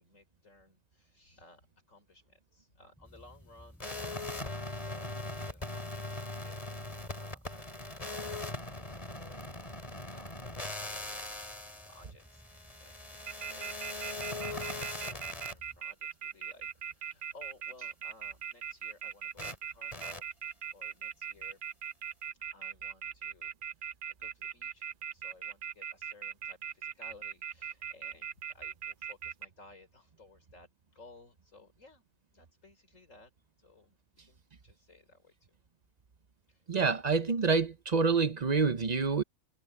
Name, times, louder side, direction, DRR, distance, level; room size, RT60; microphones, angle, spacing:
voice 1, 0.0-12.5 12.8-13.9 14.2-21.6 22.3-32.0 32.3-33.3 33.6-34.0 34.2-35.5 36.5-36.6, left 2 dB, 60° left, 5.1 m, -58 dB
sound 1, 2.9-15.8, equal, ahead, 6.3 m, -58 dB
sound 2, 3.8-15.5 19.4-19.5 19.9-20.2, left 2 dB, 25° left, 2.9 m, -40 dB
sound 3, 13.3-29.5, right 8 dB, 65° right, 0.5 m, -39 dB
voice 2, 36.7-39.2, right 4 dB, 35° right, 0.8 m, -27 dB
omnidirectional pair, 1.5 m